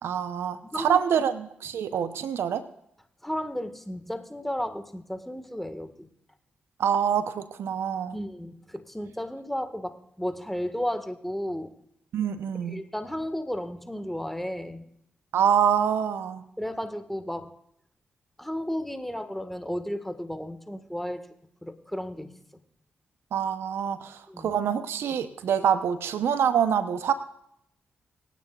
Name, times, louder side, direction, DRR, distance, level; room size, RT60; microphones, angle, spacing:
voice 1, 0.0-2.6 6.8-8.2 12.1-12.8 15.3-16.4 23.3-27.1, right 8 dB, 75° right, 11 dB, 0.8 m, -26 dB
voice 2, 3.2-6.1 8.1-11.7 12.7-14.8 16.6-17.5 18.4-21.3 21.6-22.3 24.3-24.5, equal, 5° left, 9 dB, 1.6 m, -33 dB
27.5 x 9.2 x 2.4 m, 0.75 s
supercardioid pair, 45°, 4 cm